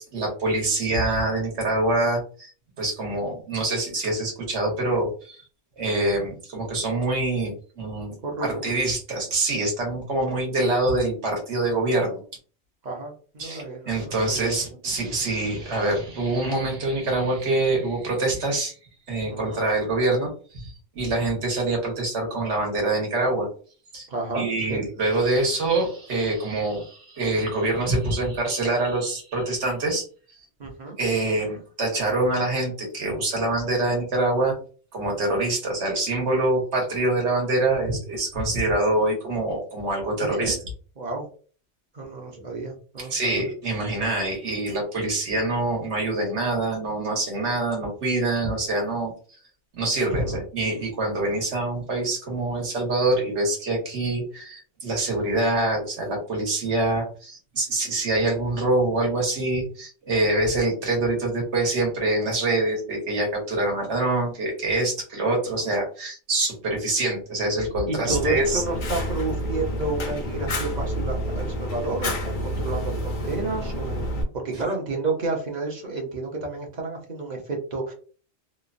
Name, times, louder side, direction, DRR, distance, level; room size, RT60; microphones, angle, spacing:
voice 1, 0.1-2.5 2.8-5.4 5.8-8.1 8.4-12.2 13.4-18.7 19.1-23.5 23.9-24.1 24.3-30.0 31.0-34.5 34.9-40.6 43.0-49.1 49.7-68.6, right 2 dB, 70° right, 0 dB, 1.3 m, -25 dB
voice 2, 12.8-14.5 19.3-19.6 24.1-24.8 30.6-31.0 40.2-40.6 41.0-41.3 41.9-43.5 50.1-50.4 65.5-65.7 67.9-74.1 74.3-77.9, right 3 dB, 45° right, 0 dB, 0.7 m, -31 dB
Fire, 68.1-74.2, equal, 55° left, 0.7 m, -29 dB
3.0 x 2.1 x 2.5 m, 0.40 s
omnidirectional pair, 1.2 m